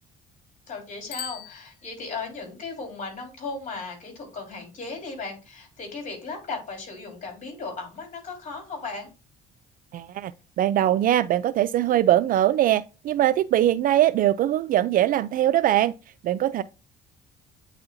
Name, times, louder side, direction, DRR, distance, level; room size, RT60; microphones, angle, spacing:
voice 1, 0.7-9.1, left 4 dB, 50° left, 3.4 m, -36 dB
Bicycle bell, 1.1-2.4, left 9 dB, 90° left, 0.8 m, -40 dB
voice 2, 9.9-10.3 10.6-15.9 16.2-16.6, right 12 dB, 55° right, 0.4 m, -21 dB
8.7 x 4.2 x 2.6 m
cardioid pair, 110°, 17 cm